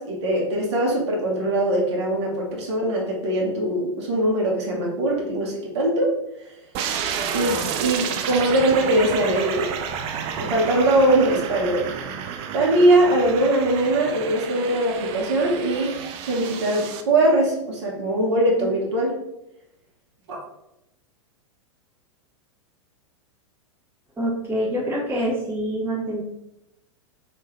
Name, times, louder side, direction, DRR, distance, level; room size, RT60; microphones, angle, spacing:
voice 1, 0.0-6.1 7.3-9.7 10.4-11.9 12.5-16.0 16.2-19.1 20.3-20.4, right 1 dB, 60° right, -2 dB, 1.1 m, -21 dB
sound 1, 6.7-17.0, right 7 dB, 35° right, 0.4 m, -31 dB
voice 2, 24.2-26.2, equal, 15° right, -6 dB, 1.3 m, -26 dB
3.6 x 2.6 x 3.1 m, 0.85 s
figure-of-eight pair, 95°, 16 cm